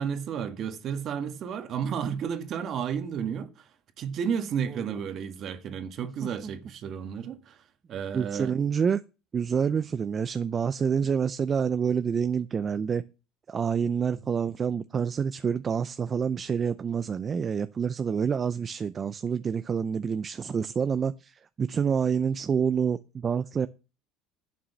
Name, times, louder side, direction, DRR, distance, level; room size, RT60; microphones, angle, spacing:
voice 1, 0.0-3.7 4.0-7.6 7.9-8.6 11.0-11.1, right 7 dB, 45° right, 1.7 m, -32 dB
voice 2, 8.1-9.0 9.3-13.0 13.5-23.7, right 6 dB, 30° right, 0.5 m, -27 dB
11.0 x 6.1 x 7.2 m
supercardioid pair, 120°, 0 cm